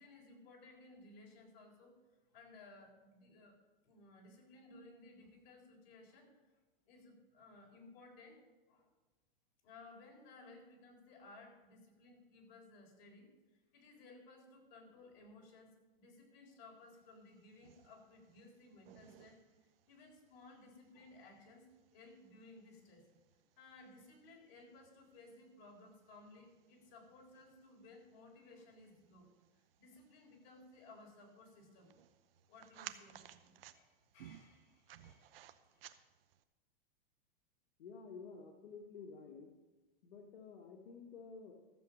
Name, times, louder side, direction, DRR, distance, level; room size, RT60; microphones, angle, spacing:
voice 1, 0.0-2.0 2.3-3.6 3.8-6.4 6.9-8.9 9.6-23.1 23.6-29.3 29.8-31.9 32.5-35.3 35.6-35.8, left 2 dB, 50° left, 0 dB, 4.0 m, -59 dB
sound 1, 17.0-36.4, right 11 dB, 75° right, 0.8 m, -60 dB
voice 2, 37.8-39.5 40.0-41.5, left 5 dB, 80° left, 1 dB, 1.5 m, -51 dB
13.5 x 7.4 x 6.4 m, 1.2 s
supercardioid pair, 155°, 29 cm